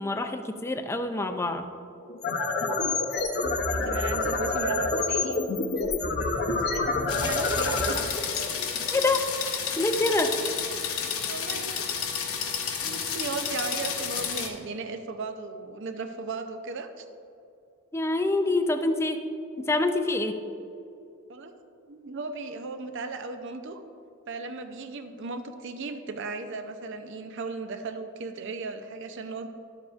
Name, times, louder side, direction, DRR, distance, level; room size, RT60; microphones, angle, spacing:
voice 1, 0.0-1.7 8.9-9.3 9.8-10.4 17.9-19.2 19.6-20.4, left 2 dB, 15° left, 8 dB, 0.4 m, -26 dB
sound 1, 2.0-9.1, left 3 dB, 50° left, 0.7 m, -28 dB
voice 2, 3.6-5.4 6.5-8.6 11.2-11.9 12.8-17.1 21.3-21.5 21.9-23.8 24.3-29.5, right 3 dB, 60° right, 8 dB, 0.6 m, -36 dB
sound 2, 7.1-14.5, left 7 dB, 90° left, 0.9 m, -31 dB
11.5 x 7.2 x 2.5 m, 2.6 s
head